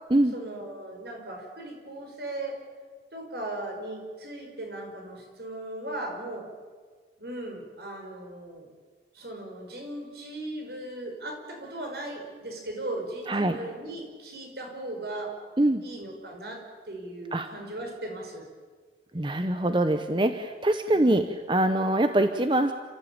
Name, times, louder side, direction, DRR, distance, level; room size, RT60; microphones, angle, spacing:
voice 1, 0.3-2.6 3.1-6.5 7.2-8.7 9.1-15.3 15.8-16.6 16.9-18.5 20.9-21.3, right 1 dB, 70° right, 2 dB, 5.7 m, -37 dB
voice 2, 13.3-13.6 15.6-15.8 17.3-17.5 19.1-22.7, right 1 dB, 25° right, 8 dB, 0.8 m, -24 dB
29.5 x 14.5 x 8.7 m, 1.5 s
head